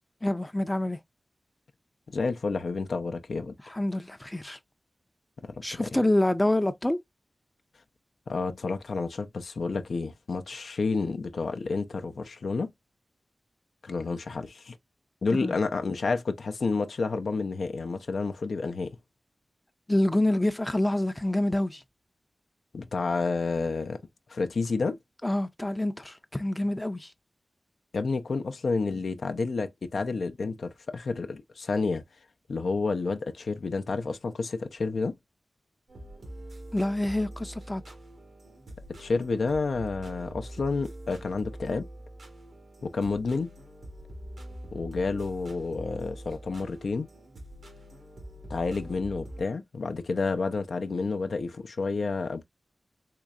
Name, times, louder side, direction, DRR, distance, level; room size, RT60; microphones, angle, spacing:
voice 1, 0.2-1.0 3.7-4.6 5.6-7.0 15.4-15.6 19.9-21.8 25.2-27.1 36.7-37.8, left 1 dB, 15° left, 0.4 m, -27 dB
voice 2, 2.1-3.6 5.4-5.9 8.3-12.7 13.8-14.8 15.2-19.0 22.7-24.0 24.3-25.0 27.9-32.0 32.5-35.2 39.0-41.9 42.8-43.5 44.7-47.1 48.5-52.4, left 4 dB, 80° left, 0.4 m, -30 dB
sound 1, 35.9-49.4, right 1 dB, 85° right, 1.2 m, -44 dB
3.7 x 3.1 x 2.2 m
cardioid pair, 60°, 0 cm